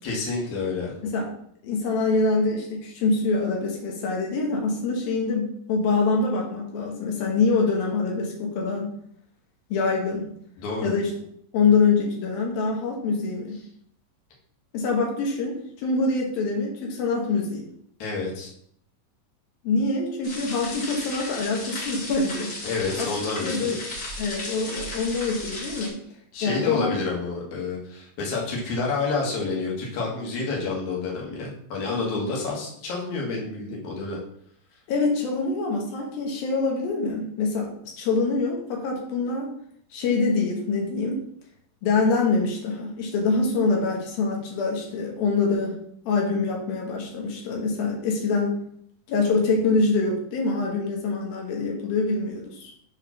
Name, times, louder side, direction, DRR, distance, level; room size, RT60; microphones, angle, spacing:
voice 1, 0.0-0.9 10.6-10.9 18.0-18.5 22.6-23.7 26.3-34.2, left 3 dB, 60° left, -3 dB, 2.9 m, -29 dB
voice 2, 1.6-8.9 9.7-10.2 10.8-11.1 11.5-13.6 14.7-17.6 19.6-22.5 23.0-23.1 23.4-23.8 24.2-26.0 26.4-26.9 34.9-37.7 38.0-39.5 39.9-41.2 41.8-45.8 46.1-48.6 49.1-52.7, left 3 dB, 85° left, -1 dB, 3.1 m, -25 dB
sound 1, 20.2-25.9, left 2 dB, 35° left, 1.7 m, -35 dB
7.2 x 3.6 x 5.7 m, 0.68 s
omnidirectional pair, 4.1 m